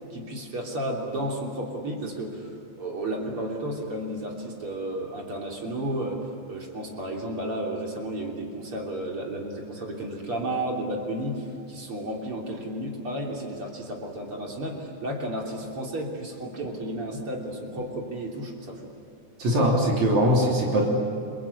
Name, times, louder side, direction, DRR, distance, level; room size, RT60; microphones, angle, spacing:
voice 1, 0.1-18.9, right 1 dB, 45° right, 0 dB, 4.1 m, -32 dB
voice 2, 19.4-20.9, equal, 70° right, -2 dB, 4.7 m, -21 dB
29.5 x 23.0 x 8.6 m, 2.5 s
omnidirectional pair, 3.4 m